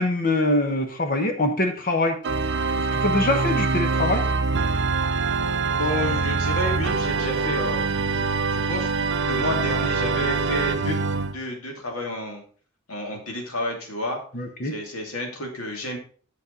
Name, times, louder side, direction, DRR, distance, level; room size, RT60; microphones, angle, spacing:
voice 1, 0.0-2.2 2.8-4.3 14.3-14.7, left 2 dB, 45° left, 5 dB, 1.1 m, -24 dB
Organ, 2.2-11.3, right 4 dB, 60° right, 0.6 m, -24 dB
voice 2, 5.7-7.9 8.1-8.9 9.2-11.0 11.3-12.4 12.9-14.2 14.6-16.0, left 1 dB, 80° left, 2 dB, 2.4 m, -30 dB
8.4 x 6.7 x 3.9 m, 0.42 s
head